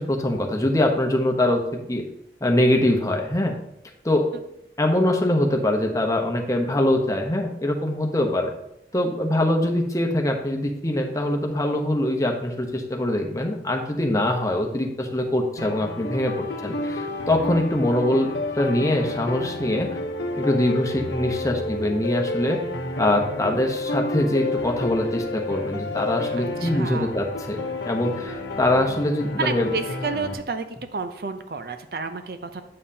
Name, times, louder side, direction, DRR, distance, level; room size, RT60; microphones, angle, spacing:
voice 1, 0.0-1.6 1.9-2.0 2.4-3.6 4.0-4.3 4.8-8.5 8.9-18.3 18.5-20.0 20.4-22.6 23.0-29.7, left 1 dB, 20° left, 2 dB, 0.9 m, -23 dB
sound 1, 15.6-30.4, left 2 dB, 85° left, 0.9 m, -30 dB
voice 2, 26.6-27.1 29.4-30.6 30.9-32.6, right 4 dB, 60° right, 8 dB, 0.5 m, -30 dB
8.6 x 7.3 x 2.8 m, 0.80 s
head